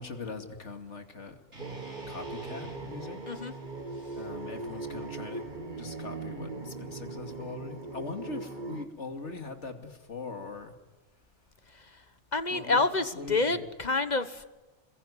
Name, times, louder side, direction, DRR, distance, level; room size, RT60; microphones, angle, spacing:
voice 1, 0.0-1.4 2.1-3.2 4.1-5.4 5.7-10.7 12.5-13.7, left 3 dB, 80° left, 6 dB, 2.8 m, -41 dB
sound 1, 1.5-5.7, right 1 dB, 75° right, 7.2 m, -51 dB
sound 2, 1.6-8.8, right 3 dB, 40° right, 1.9 m, -39 dB
voice 2, 12.3-14.5, left 3 dB, 40° left, 12 dB, 1.2 m, -28 dB
27.5 x 21.5 x 9.9 m, 1.1 s
omnidirectional pair, 1.2 m